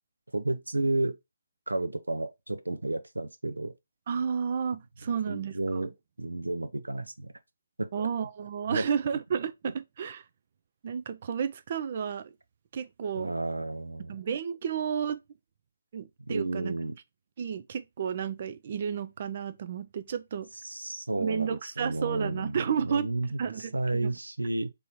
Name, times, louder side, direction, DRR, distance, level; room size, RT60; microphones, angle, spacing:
voice 1, 0.3-1.2 1.7-3.7 5.3-7.3 7.8-8.1 8.7-8.9 13.2-14.2 16.2-17.0 20.6-24.7, right 2 dB, 80° right, 0.7 m, -32 dB
voice 2, 4.1-5.9 7.9-10.2 10.8-12.3 12.7-13.3 14.1-15.2 15.9-16.7 17.4-20.5 21.1-23.1 23.4-24.1, right 7 dB, 40° right, 0.5 m, -32 dB
4.1 x 3.4 x 2.9 m
figure-of-eight pair, 140°, 0 cm